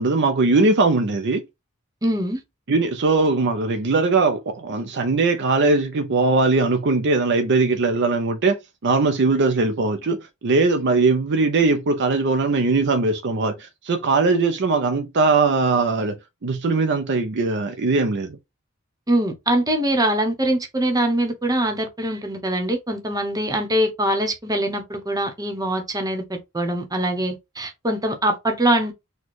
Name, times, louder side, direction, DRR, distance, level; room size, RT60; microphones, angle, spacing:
voice 1, 0.0-1.4 2.7-16.2 16.4-18.4, right 3 dB, 55° right, 0.5 m, -20 dB
voice 2, 2.0-2.4 19.1-28.9, right 1 dB, 15° right, 1.0 m, -23 dB
4.3 x 2.3 x 4.6 m
head